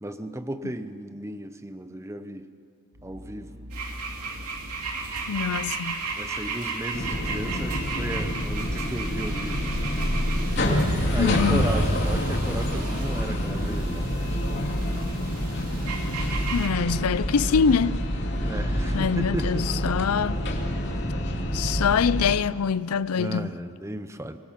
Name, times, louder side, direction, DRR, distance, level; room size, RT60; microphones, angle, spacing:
voice 1, 0.0-2.5 3.0-3.6 6.2-9.7 11.1-14.3 18.4-19.6 23.2-24.4, right 1 dB, 15° right, 0.8 m, -34 dB
sound 1, 2.9-20.5 20.7-20.8, equal, 50° right, 1.9 m, -40 dB
sound 2, 3.7-16.7, right 4 dB, 90° right, 2.8 m, -35 dB
voice 2, 5.3-6.0 11.2-11.6 16.5-18.0 18.9-20.4 21.5-23.5, left 6 dB, 80° left, 0.5 m, -24 dB
sound 3, 6.9-22.3, equal, 50° left, 2.8 m, -27 dB
25.0 x 18.5 x 5.9 m
head